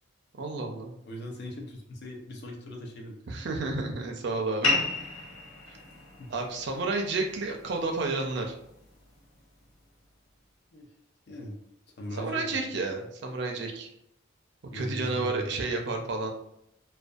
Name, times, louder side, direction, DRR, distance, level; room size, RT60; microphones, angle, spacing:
voice 1, 0.4-0.9 3.3-4.8 5.7-5.8 6.3-8.6 12.2-13.9 14.7-16.3, right 3 dB, 55° right, 2 dB, 0.4 m, -31 dB
voice 2, 1.1-3.1 5.7-5.8 6.2-6.3 10.7-10.9 11.3-11.6 12.0-12.7 14.7-15.4, left 1 dB, 50° left, 0 dB, 0.4 m, -39 dB
sound 1, 4.6-9.7, left 3 dB, 85° left, 0.7 m, -34 dB
2.5 x 2.2 x 2.3 m, 0.75 s
head